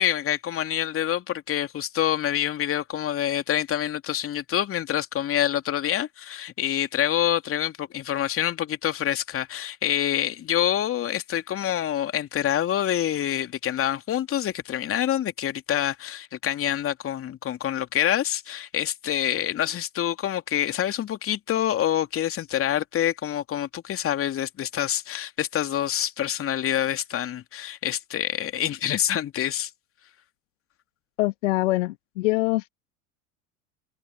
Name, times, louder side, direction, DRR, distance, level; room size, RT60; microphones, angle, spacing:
voice 1, 0.0-29.7, left 11 dB, 30° left, 2.9 m, -26 dB
voice 2, 31.2-32.7, left 20 dB, 60° left, 1.6 m, -24 dB
figure-of-eight pair, 80°, 41 cm